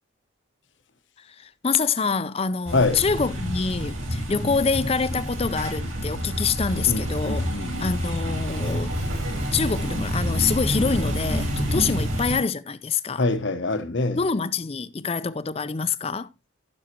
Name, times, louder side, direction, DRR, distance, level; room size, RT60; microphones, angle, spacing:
voice 1, 1.4-7.5 7.8-8.9 9.5-13.2 14.2-16.3, left 5 dB, 30° left, 0.5 m, -26 dB
sound 1, 2.7-12.4, equal, 75° right, 4.0 m, -28 dB
voice 2, 6.9-8.0 11.7-11.9 13.2-14.2, left 3 dB, 60° left, 1.0 m, -25 dB
15.0 x 6.3 x 2.9 m
head